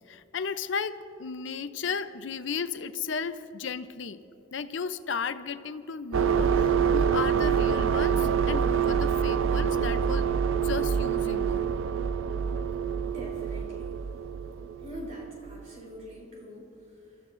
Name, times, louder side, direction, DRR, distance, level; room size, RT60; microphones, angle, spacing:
voice 1, 0.1-4.2 4.5-10.3 10.6-11.7, left 5 dB, 70° left, 12 dB, 0.5 m, -34 dB
sound 1, 6.1-15.6, right 7 dB, 85° right, 0.5 m, -26 dB
voice 2, 13.0-14.2 14.8-17.2, equal, 35° right, -2 dB, 3.2 m, -44 dB
27.5 x 14.0 x 2.5 m, 2.9 s
head